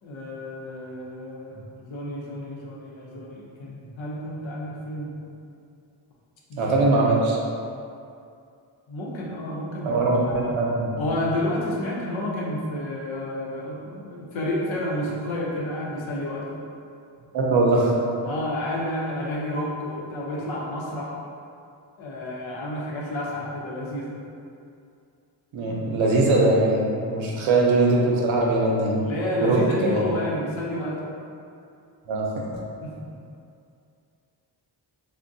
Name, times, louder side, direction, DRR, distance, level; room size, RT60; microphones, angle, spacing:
voice 1, 0.0-5.3 6.5-6.9 8.9-10.6 11.0-16.6 18.2-21.1 22.0-24.2 29.0-31.1 32.8-33.1, left 1 dB, 80° left, -4 dB, 0.8 m, -30 dB
voice 2, 6.6-7.4 9.8-11.0 17.3-17.9 25.5-29.0 29.4-30.0 32.1-32.3, right 2 dB, 85° right, -3 dB, 0.7 m, -21 dB
3.5 x 2.2 x 2.6 m, 2.5 s
wide cardioid pair, 110°, 46 cm